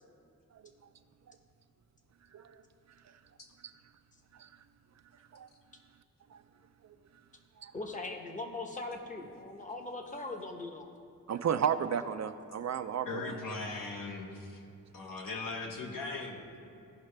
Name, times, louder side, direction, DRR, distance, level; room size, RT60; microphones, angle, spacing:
voice 1, 7.7-10.9, left 2 dB, 25° left, 3 dB, 0.9 m, -40 dB
voice 2, 11.3-13.2, right 8 dB, 55° right, 10 dB, 0.4 m, -33 dB
voice 3, 13.0-14.7 14.9-16.6, left 3 dB, 70° left, 0 dB, 1.4 m, -39 dB
16.0 x 5.7 x 3.3 m, 2.6 s
wide cardioid pair, 120°, 34 cm